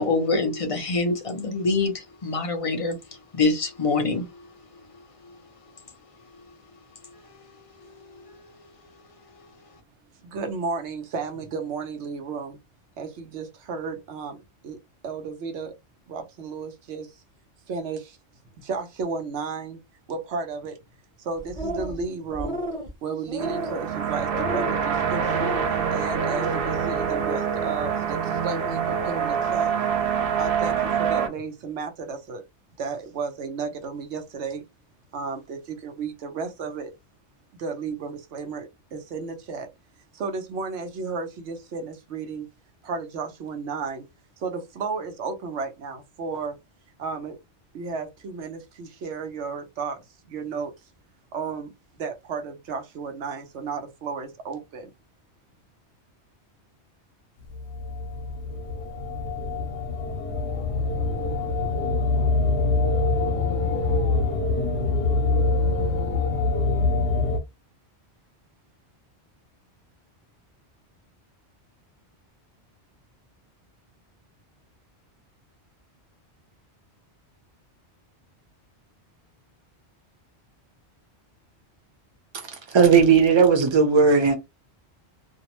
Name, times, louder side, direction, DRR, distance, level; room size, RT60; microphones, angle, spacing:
voice 1, 0.0-5.4 7.0-7.2 7.8-8.4, left 3 dB, 45° left, 0.5 m, -26 dB
voice 2, 10.2-12.6 13.0-14.4 14.6-14.8 15.0-15.8 16.1-17.1 17.7-18.2 18.6-19.8 20.1-20.8 21.2-22.6 23.0-25.5 25.9-29.7 30.4-32.4 32.8-34.6 35.1-36.9 37.5-39.7 40.1-42.5 42.8-44.0 44.4-46.6 47.0-47.4 47.7-50.0 50.3-50.7 51.3-54.9, right 5 dB, 85° right, 1.0 m, -33 dB
sound 1, 21.4-22.0 22.3-22.9 23.3-23.8 24.3-24.8 25.2-25.7 26.1-26.5, equal, 5° left, 0.7 m, -32 dB
sound 2, 23.4-31.3, right 7 dB, 65° right, 0.7 m, -26 dB
sound 3, 57.5-67.4, left 3 dB, 70° left, 0.8 m, -24 dB
voice 3, 82.7-84.3, right 5 dB, 30° right, 0.6 m, -16 dB
2.6 x 2.0 x 2.9 m
omnidirectional pair, 1.1 m